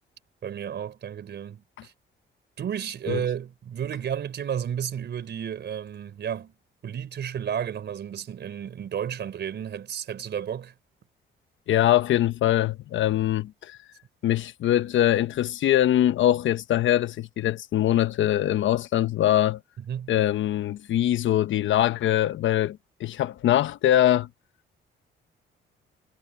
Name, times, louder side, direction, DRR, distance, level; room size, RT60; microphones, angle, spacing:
voice 1, 0.4-1.9 2.6-6.5 6.8-10.7 19.9-20.1, right 9 dB, 60° right, 4.1 m, -32 dB
voice 2, 11.7-13.8 14.2-19.6 20.1-24.3, left 12 dB, 75° left, 1.1 m, -23 dB
cardioid pair, 90°, 20 cm